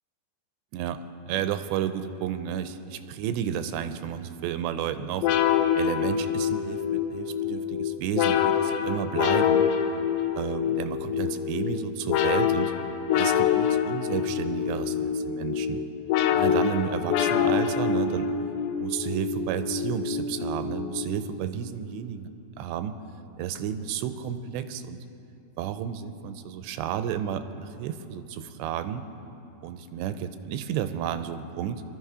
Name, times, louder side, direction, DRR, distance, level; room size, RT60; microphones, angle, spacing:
voice 1, 1.3-5.3 5.8-9.7 10.4-12.7 13.1-15.8 16.3-18.3 18.8-22.3 22.6-23.0 23.4-25.0 25.6-29.0 29.6-31.8, right 9 dB, 85° right, 10 dB, 2.9 m, -32 dB
sound 1, 5.2-21.4, left 8 dB, 90° left, 3.0 m, -26 dB
23.0 x 13.0 x 4.9 m, 2.9 s
omnidirectional pair, 4.9 m